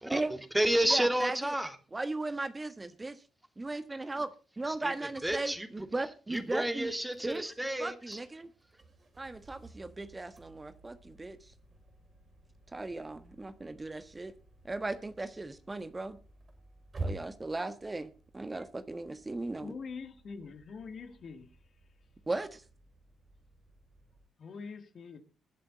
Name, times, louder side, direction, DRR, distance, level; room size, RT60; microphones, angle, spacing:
voice 1, 0.0-1.8 4.7-5.9 6.3-8.2, right 1 dB, 10° right, 2.5 m, -31 dB
voice 2, 0.9-1.5 1.9-3.2 3.6-4.3 4.6-6.9 7.2-7.4 7.8-8.5 9.2-11.5 12.7-14.3 14.6-16.2 17.0-19.7 22.3-22.6, right 2 dB, 25° right, 1.3 m, -37 dB
sound 1, 6.3-24.3, right 2 dB, 40° right, 5.9 m, -50 dB
voice 3, 19.6-21.5 24.4-25.2, left 5 dB, 55° left, 2.0 m, -44 dB
21.0 x 7.8 x 4.0 m
hypercardioid pair, 45°, 0 cm